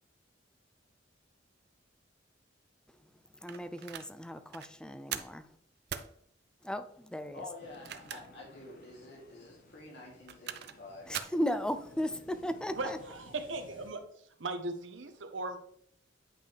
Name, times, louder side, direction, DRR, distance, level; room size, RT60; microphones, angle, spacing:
voice 1, 3.4-5.5 6.6-7.4 11.1-13.0, equal, 5° left, 0.4 m, -36 dB
sound 1, 3.5-4.1 4.5-4.7 5.1-5.4 5.9-6.1 7.6-8.4 8.8-8.9 10.0-10.8 11.1-11.4, right 9 dB, 60° right, 0.5 m, -40 dB
voice 2, 7.3-11.1, left 2 dB, 65° left, 2.9 m, -48 dB
sound 2, 7.6-13.9, left 1 dB, 45° left, 1.1 m, -57 dB
voice 3, 12.7-14.0 14.4-15.6, right 2 dB, 90° right, 1.0 m, -38 dB
8.9 x 5.4 x 3.3 m
head